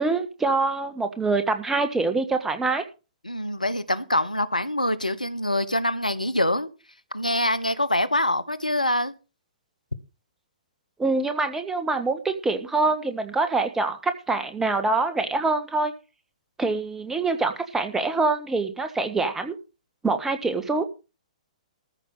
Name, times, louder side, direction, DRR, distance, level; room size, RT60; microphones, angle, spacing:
voice 1, 0.0-2.8 11.0-15.9 16.6-19.6 20.0-20.8, right 3 dB, 10° right, 1.6 m, -25 dB
voice 2, 3.2-6.7 7.1-9.1, left 1 dB, 90° left, 1.1 m, -25 dB
14.5 x 5.8 x 7.4 m
figure-of-eight pair, 120°, 4 cm